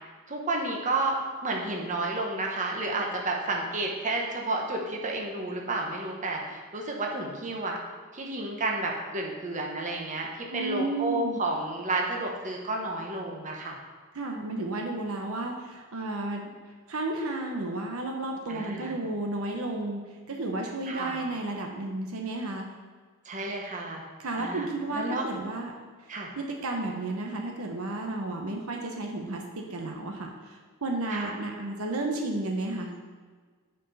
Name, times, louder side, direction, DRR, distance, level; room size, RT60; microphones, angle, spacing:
voice 1, 0.3-7.8 8.1-10.3 10.5-13.8 18.5-19.0 20.9-21.2 23.2-24.0 24.4-24.7 24.9-25.3 26.1-26.3 31.1-31.3, right 2 dB, 35° right, 0 dB, 1.0 m, -31 dB
voice 2, 10.5-11.4 14.1-16.5 16.9-20.0 20.3-22.7 24.2-25.7 26.4-33.0, right 2 dB, 75° right, 2 dB, 0.9 m, -32 dB
9.6 x 4.6 x 4.1 m, 1.5 s
head